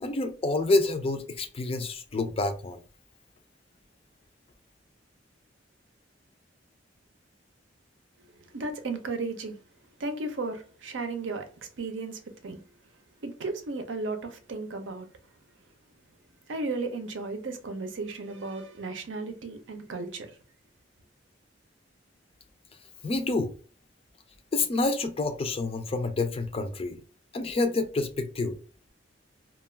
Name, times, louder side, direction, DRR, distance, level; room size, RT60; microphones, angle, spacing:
voice 1, 0.0-2.8 23.0-23.5 24.5-27.0 27.3-28.6, left 2 dB, 30° left, 0.4 m, -28 dB
voice 2, 8.2-9.6 10.0-12.6 13.2-15.1 16.5-20.4, right 3 dB, 75° right, 0.6 m, -35 dB
2.3 x 2.3 x 3.2 m
head